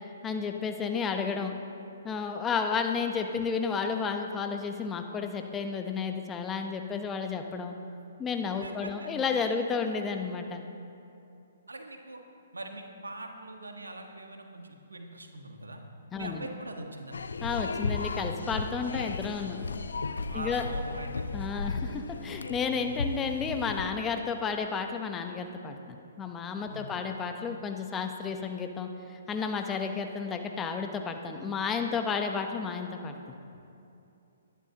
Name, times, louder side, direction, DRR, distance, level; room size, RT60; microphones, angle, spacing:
voice 1, 0.2-1.5 2.0-7.7 8.2-10.6 16.1-16.5 17.4-19.6 20.3-20.6 21.3-33.3, left 5 dB, 15° left, 5 dB, 0.8 m, -32 dB
voice 2, 8.6-9.1 11.7-12.2 12.5-15.8 16.1-17.2 20.3-21.3 26.7-26.9, right 2 dB, 90° right, 3 dB, 1.4 m, -42 dB
sound 1, 17.1-23.9, left 4 dB, 75° left, 0.5 m, -35 dB
20.5 x 11.0 x 2.9 m, 2.7 s
hypercardioid pair, 130°, 0 cm